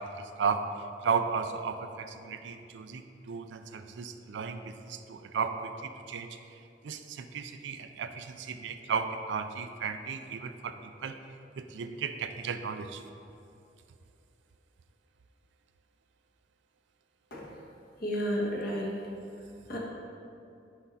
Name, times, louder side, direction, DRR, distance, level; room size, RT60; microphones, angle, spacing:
voice 1, 1.0-4.6 4.8-6.3 6.8-10.7 11.0-11.2 11.6-13.0, right 6 dB, 80° right, 8 dB, 0.4 m, -34 dB
voice 2, 18.0-18.9 19.7-19.8, equal, 55° left, -4 dB, 1.3 m, -31 dB
5.9 x 5.3 x 4.1 m, 2.6 s
head